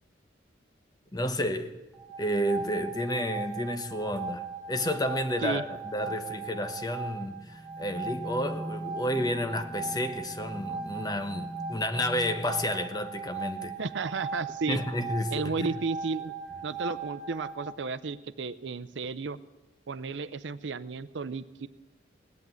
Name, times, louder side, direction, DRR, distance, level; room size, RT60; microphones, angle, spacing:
voice 1, 1.1-1.7 2.2-13.7 14.7-15.7, left 1 dB, 20° left, 0.9 m, -31 dB
sound 1, 1.9-17.8, right 5 dB, 5° right, 1.7 m, -39 dB
sound 2, 7.2-13.5, equal, 40° right, 3.5 m, -42 dB
voice 2, 13.8-14.8 15.3-16.3 16.6-19.4 19.9-21.7, right 4 dB, 75° right, 0.6 m, -33 dB
18.0 x 8.5 x 9.2 m
head